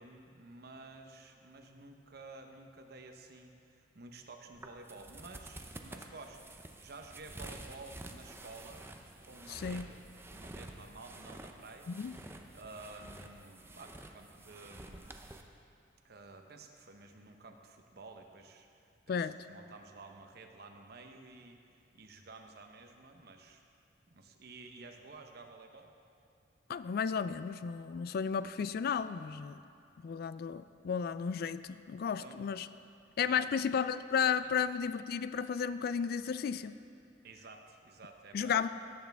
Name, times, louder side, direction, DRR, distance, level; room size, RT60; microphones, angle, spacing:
voice 1, 0.0-8.8 9.2-10.0 10.3-11.9 12.5-15.1 16.0-23.6 24.1-25.9 32.1-32.4 33.2-33.5 34.4-34.5 37.2-38.7, right 3 dB, 60° right, 4 dB, 0.9 m, -52 dB
sound 1, 4.5-15.4, right 2 dB, 15° right, 0.6 m, -50 dB
voice 2, 9.5-9.9 11.9-12.1 19.1-19.4 26.7-29.6 30.0-32.7 33.2-36.8 38.3-38.7, left 7 dB, 55° left, 14 dB, 0.3 m, -33 dB
17.5 x 8.2 x 3.5 m, 2.4 s
head